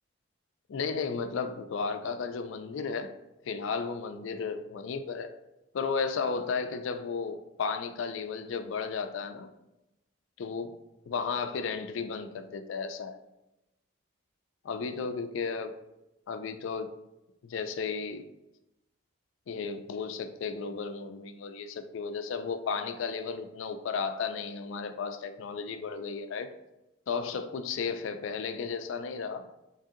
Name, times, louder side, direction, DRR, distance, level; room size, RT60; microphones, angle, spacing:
voice 1, 0.7-3.1 3.4-5.3 5.7-9.5 10.4-10.7 11.1-13.2 14.6-15.8 16.3-16.9 17.4-18.2 19.5-26.5 27.1-29.5, left 5 dB, 70° left, 9 dB, 0.3 m, -34 dB
3.7 x 3.2 x 2.7 m, 0.93 s
head